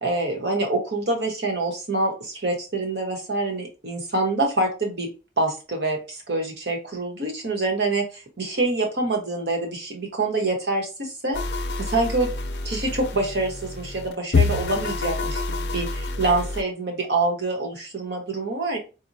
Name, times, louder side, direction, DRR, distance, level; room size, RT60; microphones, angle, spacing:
voice 1, 0.0-5.1 5.4-11.4 11.8-12.3 12.6-18.8, right 2 dB, 65° right, 1 dB, 1.1 m, -26 dB
sound 1, 11.3-16.6, left 3 dB, 70° left, 0.5 m, -27 dB
4.2 x 2.3 x 2.7 m, 0.31 s
head